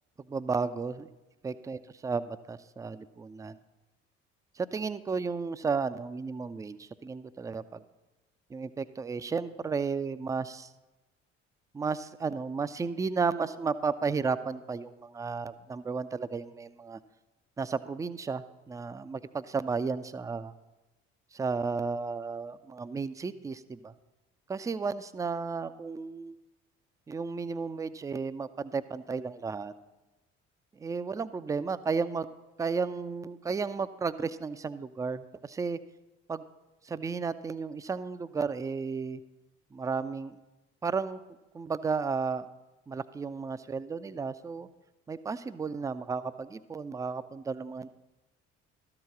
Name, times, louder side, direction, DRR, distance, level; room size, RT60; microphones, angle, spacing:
voice 1, 0.3-1.1 1.4-3.6 4.6-7.8 8.5-10.7 11.7-17.0 17.6-20.5 21.3-23.9 24.5-26.4 27.1-29.7 30.8-32.3 32.6-35.8 36.3-36.4 36.8-39.2 39.7-40.4 40.8-41.2 41.5-42.5 42.9-44.7 45.1-47.9, right 5 dB, 10° right, 14 dB, 0.4 m, -33 dB
13.0 x 4.9 x 6.8 m, 1.0 s
figure-of-eight pair, 50°, 35 cm